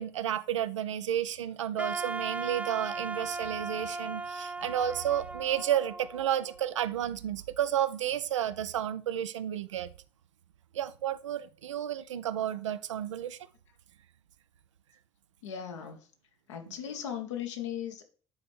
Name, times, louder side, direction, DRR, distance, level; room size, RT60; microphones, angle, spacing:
voice 1, 0.0-9.9 10.7-13.4, right 10 dB, 80° right, 0.4 m, -31 dB
Wind instrument woodwind instrument, 1.8-6.8, right 3 dB, 10° right, 0.5 m, -37 dB
voice 2, 15.4-16.1 16.5-18.0, left 9 dB, 75° left, 1.0 m, -37 dB
9.4 x 4.2 x 3.2 m
figure-of-eight pair, 60°, 15 cm